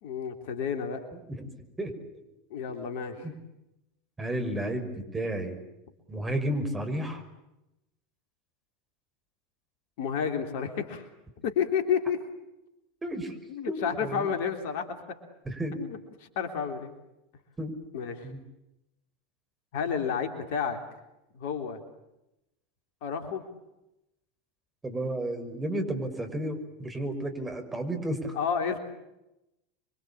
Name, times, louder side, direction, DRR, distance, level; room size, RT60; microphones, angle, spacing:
voice 1, 0.0-1.0 2.5-3.2 10.0-11.0 11.4-12.2 13.5-14.8 15.7-16.0 16.3-16.9 17.9-18.3 19.7-20.8 21.3-21.8 23.0-23.4 28.3-28.8, left 7 dB, 60° left, 6 dB, 3.3 m, -30 dB
voice 2, 1.8-2.2 3.2-3.3 4.2-5.6 6.1-7.2 13.0-13.3 13.7-14.3 15.4-15.8 17.6-17.7 18.2-18.4 24.8-28.3, right 1 dB, 15° right, 5 dB, 5.8 m, -32 dB
27.0 x 24.0 x 8.7 m, 0.92 s
figure-of-eight pair, 80°, 0 cm